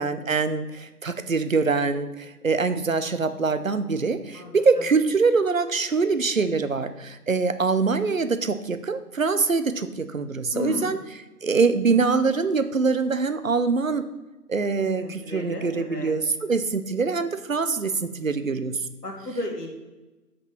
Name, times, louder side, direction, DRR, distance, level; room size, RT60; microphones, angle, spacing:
voice 1, 0.0-11.0 11.4-14.1 14.5-18.8, right 4 dB, 55° right, 10 dB, 0.6 m, -24 dB
voice 2, 4.3-4.8 10.5-11.0 15.0-16.1 19.0-19.7, left 2 dB, 75° left, 0 dB, 2.3 m, -34 dB
6.0 x 5.4 x 5.6 m, 1.1 s
figure-of-eight pair, 170°, 48 cm